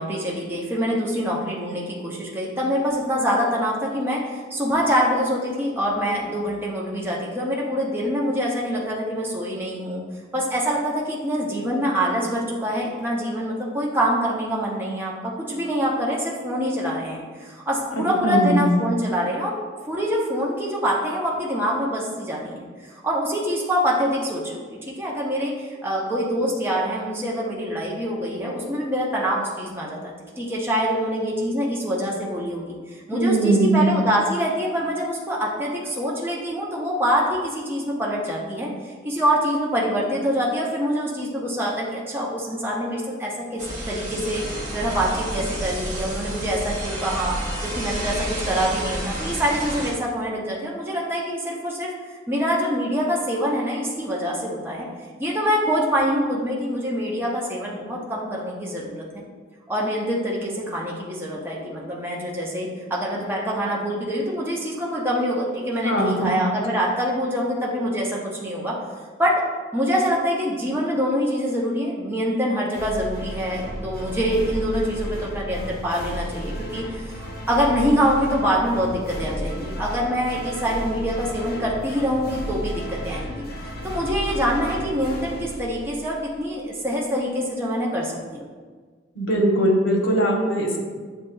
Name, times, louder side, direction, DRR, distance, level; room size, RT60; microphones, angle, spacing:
voice 1, 0.0-10.0 10.3-15.1 15.5-19.5 19.9-47.4 47.6-51.9 52.3-54.9 55.2-59.0 59.7-68.8 69.2-69.4 69.7-83.4 83.8-88.4, equal, 10° right, -4 dB, 0.6 m, -25 dB
voice 2, 18.0-18.6 33.1-33.9 65.8-66.3 89.2-90.8, right 1 dB, 85° left, 0 dB, 0.9 m, -20 dB
sound 1, 43.6-49.9, right 1 dB, 40° right, 0.9 m, -30 dB
sound 2, 72.7-86.4, equal, 50° left, 0.6 m, -33 dB
7.4 x 2.7 x 2.3 m, 1.5 s
head